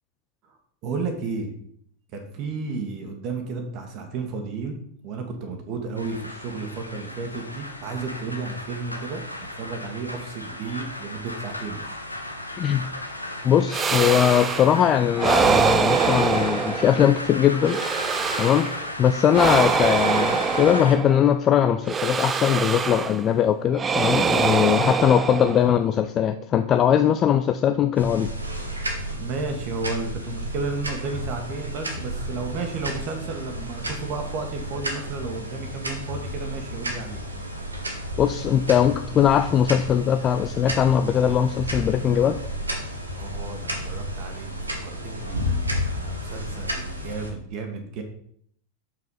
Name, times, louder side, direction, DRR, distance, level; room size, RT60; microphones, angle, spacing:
voice 1, 0.8-1.5 2.1-4.8 5.0-9.2 9.6-11.9 29.2-37.2 43.1-45.5 45.9-48.0, right 4 dB, 40° right, 4 dB, 1.7 m, -32 dB
sound 1, 6.0-21.0, left 1 dB, 85° left, 1.0 m, -35 dB
voice 2, 12.6-12.9 13.4-17.8 18.4-18.7 19.0-28.3 38.2-42.4, left 9 dB, 30° left, 8 dB, 0.5 m, -20 dB
sound 2, 13.7-14.8 15.2-17.2 17.6-18.8 19.3-21.3 21.9-23.3 23.7-25.9, right 5 dB, 20° right, 0.5 m, -24 dB
sound 3, 28.0-47.3, equal, 80° right, 1.6 m, -32 dB
6.8 x 6.0 x 5.6 m, 0.66 s
figure-of-eight pair, 90°, 0 cm